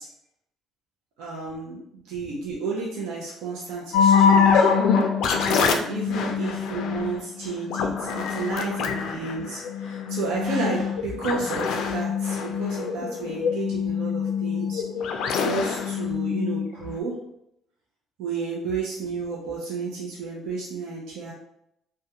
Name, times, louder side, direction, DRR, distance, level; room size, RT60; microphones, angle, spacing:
voice 1, 1.2-4.7 5.4-14.8 15.4-17.2 18.2-21.3, right 4 dB, 85° right, -4 dB, 0.5 m, -32 dB
sound 1, 3.9-17.0, left 6 dB, 75° left, 0.3 m, -24 dB
2.3 x 2.2 x 2.8 m, 0.77 s
cardioid pair, 115°, 0 cm